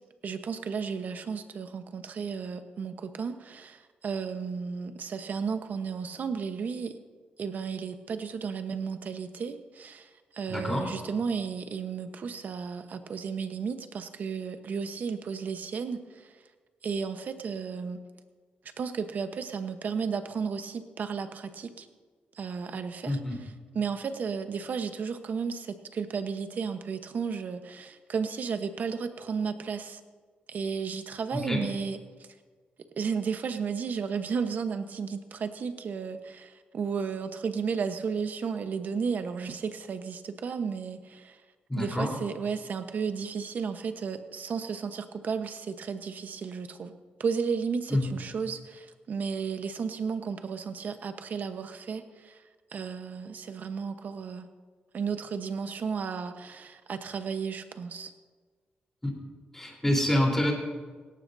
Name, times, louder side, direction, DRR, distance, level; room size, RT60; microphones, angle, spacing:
voice 1, 0.2-6.9 7.4-16.3 16.8-18.0 18.8-21.9 22.3-23.2 23.7-30.0 30.5-32.3 33.0-41.4 41.8-46.9 47.2-52.4 52.7-54.4 54.9-58.1, right 6 dB, 60° right, 8 dB, 1.1 m, -33 dB
voice 2, 10.5-10.8 23.1-23.4 31.3-31.6 41.7-42.1 47.9-48.0 59.0-59.1 59.5-60.5, left 1 dB, 10° left, -1 dB, 3.8 m, -27 dB
18.5 x 17.0 x 2.7 m, 1.5 s
cardioid pair, 110°, 3 cm